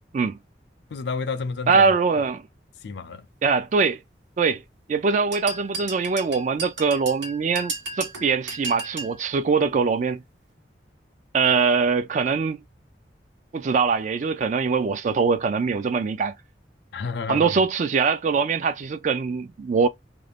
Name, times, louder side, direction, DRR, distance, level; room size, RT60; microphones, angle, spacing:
voice 1, 0.9-1.9 2.8-3.3 16.9-17.6, left 4 dB, 70° left, 0.4 m, -30 dB
voice 2, 1.7-2.4 3.4-4.0 4.4-4.6 4.9-10.2 11.3-12.6 13.5-16.3 17.3-19.9, right 5 dB, 40° right, 0.3 m, -22 dB
sound 1, 5.3-9.2, right 3 dB, 90° right, 1.2 m, -34 dB
2.6 x 2.0 x 3.2 m
head